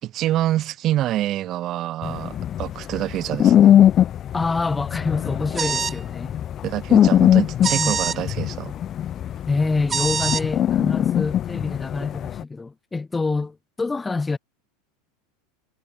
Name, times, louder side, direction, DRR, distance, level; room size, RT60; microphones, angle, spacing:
voice 1, 0.0-3.7 6.6-8.7, right 13 dB, 45° right, 2.9 m, -26 dB
sound 1, 2.0-12.4, left 10 dB, 40° left, 0.4 m, -21 dB
voice 2, 4.3-6.3 7.7-8.0 9.5-14.4, left 3 dB, 15° left, 3.9 m, -26 dB
sound 2, 5.6-6.0 7.6-8.2 9.9-10.4, right 6 dB, 25° right, 2.1 m, -24 dB
hypercardioid pair, 90°, 0 cm